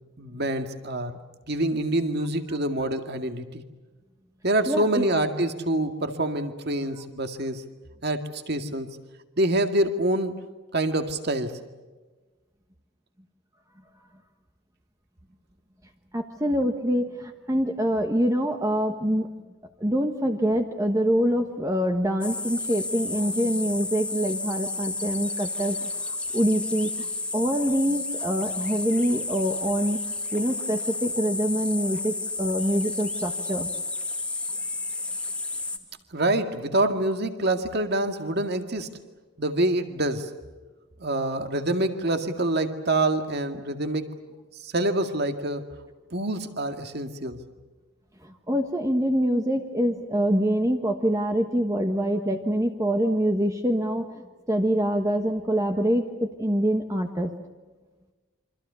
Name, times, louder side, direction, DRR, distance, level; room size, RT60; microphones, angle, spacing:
voice 1, 0.2-1.2 1.5-3.6 4.4-7.6 8.0-8.9 9.4-10.4 10.7-11.6 36.1-38.9 39.4-40.3 41.0-44.2 44.6-45.6 46.1-47.4, right 1 dB, 50° right, 7 dB, 2.1 m, -26 dB
voice 2, 4.7-5.1 16.1-19.3 19.8-30.0 30.3-33.7 48.2-54.1 54.5-57.3, equal, 15° right, 4 dB, 1.2 m, -25 dB
sound 1, 22.2-35.8, left 3 dB, 5° left, 1.8 m, -32 dB
28.0 x 25.0 x 7.0 m, 1.3 s
head